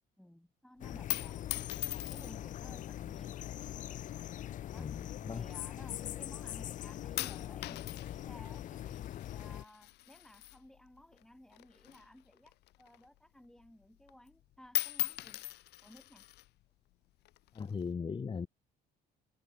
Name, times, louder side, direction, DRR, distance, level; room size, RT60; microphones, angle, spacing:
voice 1, 0.2-3.4 4.7-15.4 15.8-16.3, left 1 dB, 5° left, 6.6 m, -57 dB
sound 1, 0.8-9.6, left 12 dB, 50° left, 0.5 m, -42 dB
sound 2, 1.1-2.6 3.4-3.9 4.7-6.1 6.4-6.8 7.2-11.2 11.5-13.2 13.6-13.7 14.0-14.4 14.7-16.5 17.3-17.9, left 17 dB, 80° left, 1.6 m, -40 dB
voice 2, 4.7-5.5 17.6-18.5, left 5 dB, 30° left, 2.1 m, -38 dB
cardioid pair, 110°, 17 cm